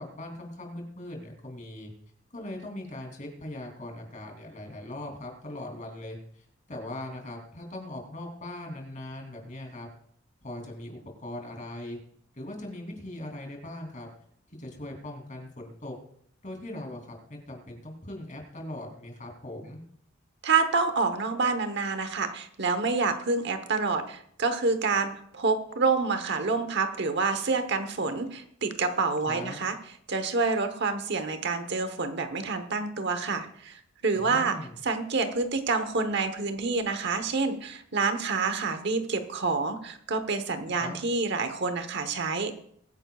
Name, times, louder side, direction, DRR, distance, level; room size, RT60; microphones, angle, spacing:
voice 1, 0.0-1.9 2.3-9.9 10.4-12.0 12.3-14.1 14.5-15.9 16.4-19.8 29.2-29.6 34.1-34.8 40.7-41.0, left 1 dB, 40° left, 1 dB, 3.1 m, -40 dB
voice 2, 20.4-29.7 30.1-34.6 34.8-42.6, right 4 dB, 60° right, 8 dB, 1.1 m, -28 dB
22.0 x 9.7 x 2.4 m, 0.66 s
head